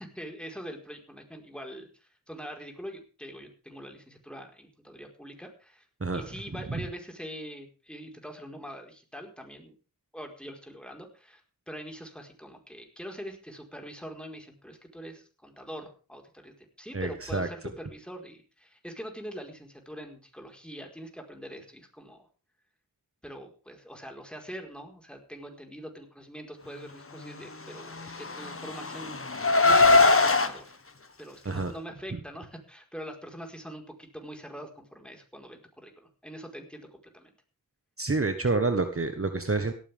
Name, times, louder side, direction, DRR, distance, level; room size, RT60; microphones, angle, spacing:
voice 1, 0.0-5.8 6.1-9.8 10.1-11.4 11.7-22.3 23.2-30.7 31.2-37.3, equal, 5° left, 2 dB, 4.9 m, -43 dB
voice 2, 6.5-6.8 16.9-17.5 31.4-31.7 38.0-39.7, right 3 dB, 40° right, 7 dB, 1.6 m, -28 dB
Car, 28.0-30.5, left 3 dB, 40° left, 1.4 m, -21 dB
17.0 x 14.0 x 3.7 m, 0.36 s
wide cardioid pair, 55°, 33 cm